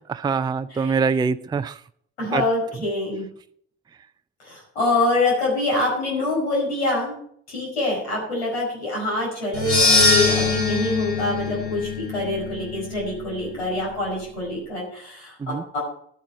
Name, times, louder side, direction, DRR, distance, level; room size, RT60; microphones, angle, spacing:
voice 1, 0.1-1.8 2.3-2.4 15.4-15.6, right 5 dB, 15° right, 11 dB, 0.5 m, -24 dB
voice 2, 2.2-3.2 4.4-7.2 7.5-15.8, left 2 dB, 80° left, -3 dB, 5.1 m, -25 dB
sound 1, 9.5-13.9, left 4 dB, 45° left, 4.4 m, -23 dB
13.0 x 8.6 x 5.1 m, 0.64 s
figure-of-eight pair, 50°, 33 cm